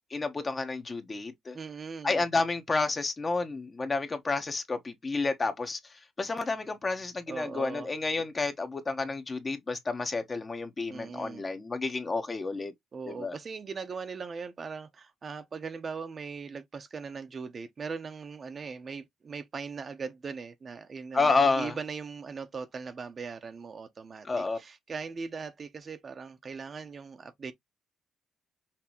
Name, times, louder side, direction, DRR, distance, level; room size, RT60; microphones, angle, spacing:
voice 1, 0.1-1.6 2.0-5.8 6.2-12.7 13.1-13.4 21.1-21.7 24.2-24.6, left 3 dB, 30° left, 1.2 m, -30 dB
voice 2, 1.5-2.2 7.3-7.9 8.2-8.3 10.9-11.4 12.9-27.5, right 5 dB, 40° right, 0.9 m, -40 dB
5.9 x 3.0 x 2.9 m
cardioid pair, 90°, 0 cm